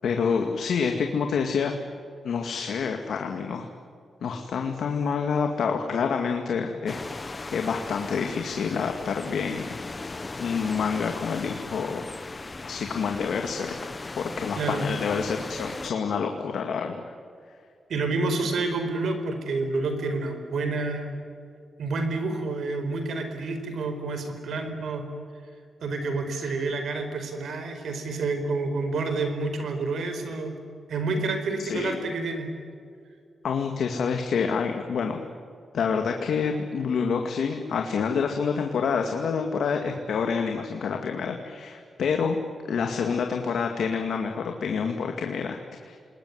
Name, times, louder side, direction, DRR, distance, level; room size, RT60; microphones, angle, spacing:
voice 1, 0.0-1.7 2.2-3.7 4.2-9.8 10.4-12.1 12.3-17.0 31.6-32.0 33.4-35.2 35.7-42.4 42.7-46.0, left 6 dB, 80° left, 4 dB, 2.1 m, -28 dB
sound 1, 6.9-15.9, left 3 dB, 30° left, 0.9 m, -38 dB
voice 2, 17.9-21.2 21.8-25.1 25.8-30.6 30.9-32.5, right 3 dB, 80° right, 7 dB, 4.7 m, -29 dB
28.0 x 20.5 x 9.7 m, 2.4 s
cardioid pair, 105°, 0 cm